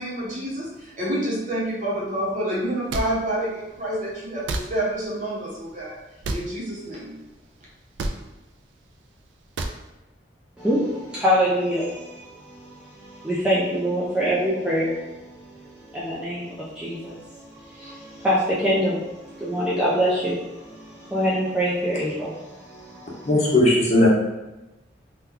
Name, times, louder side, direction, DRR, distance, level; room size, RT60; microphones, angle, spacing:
voice 1, 0.0-6.0 6.3-7.2, right 1 dB, 45° right, -6 dB, 0.8 m, -28 dB
sound 1, 2.9-3.1 4.5-4.6 6.2-6.4 8.0-8.2 9.6-9.8, right 2 dB, 85° right, 0.3 m, -27 dB
voice 2, 10.6-15.6 15.9-17.5 17.8-23.3, equal, 5° right, -9 dB, 0.4 m, -25 dB
voice 3, 23.2-24.1, left 1 dB, 40° left, -4 dB, 0.8 m, -17 dB
2.8 x 2.2 x 3.7 m, 1.0 s
head